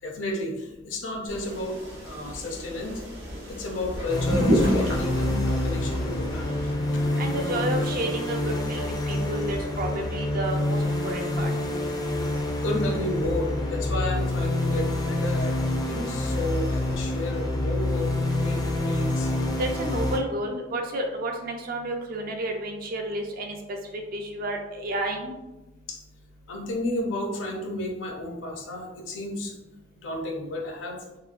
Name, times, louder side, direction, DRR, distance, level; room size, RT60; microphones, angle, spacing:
voice 1, 0.0-3.0 3.5-6.6 6.9-7.1 12.6-18.1 18.4-19.3 25.9-26.0 26.5-29.5 30.0-31.0, left 1 dB, 75° left, 1 dB, 0.5 m, -32 dB
sound 1, 1.3-6.7, equal, 70° right, 0.9 m, -30 dB
sound 2, 4.1-20.2, left 1 dB, 20° left, 0.3 m, -27 dB
voice 2, 7.2-11.5 19.6-25.3, right 1 dB, 50° right, 3 dB, 0.4 m, -31 dB
3.0 x 2.3 x 2.4 m, 1.0 s
head